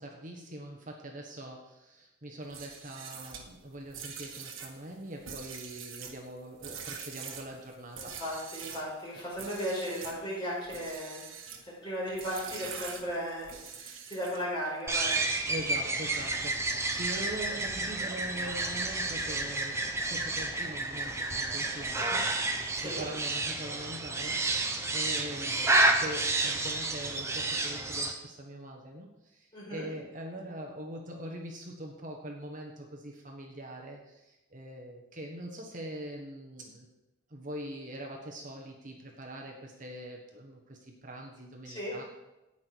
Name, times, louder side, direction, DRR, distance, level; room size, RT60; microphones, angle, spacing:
voice 1, 0.0-8.2 9.1-9.2 15.5-36.9 37.3-42.0, right 1 dB, 40° right, 0 dB, 1.3 m, -43 dB
sound 1, 2.4-8.9 9.3-10.2 10.6-11.7 12.2-14.6, right 6 dB, 80° right, 1.5 m, -44 dB
voice 2, 8.2-11.2 11.6-15.2 22.7-23.0 29.5-29.9 41.7-41.9, equal, 20° left, -5 dB, 5.0 m, -36 dB
sound 2, 14.9-28.1, right 2 dB, 15° right, 0.8 m, -30 dB
17.5 x 5.9 x 4.6 m, 0.95 s
head